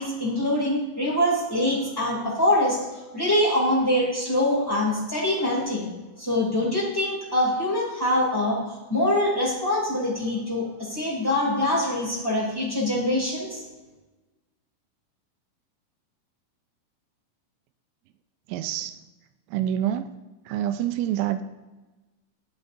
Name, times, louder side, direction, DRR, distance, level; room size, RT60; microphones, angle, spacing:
voice 1, 0.0-2.8 3.1-5.9 6.2-8.6 8.9-13.6, left 1 dB, 25° left, -6 dB, 0.4 m, -24 dB
voice 2, 18.5-18.9 19.5-20.0 20.5-21.4, right 11 dB, 85° right, 9 dB, 2.9 m, -26 dB
15.5 x 9.4 x 2.6 m, 1.2 s
omnidirectional pair, 6.0 m